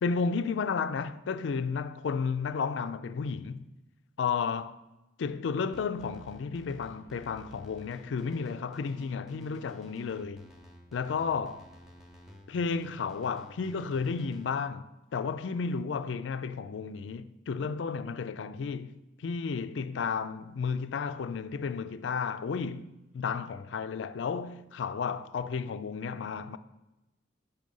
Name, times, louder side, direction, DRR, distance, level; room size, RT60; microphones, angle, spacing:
voice 1, 0.0-3.7 4.2-4.8 5.2-10.5 10.9-11.6 12.5-26.6, left 5 dB, 75° left, 0.4 m, -33 dB
sound 1, 5.7-14.5, left 1 dB, ahead, 0.7 m, -52 dB
6.4 x 5.4 x 5.4 m
head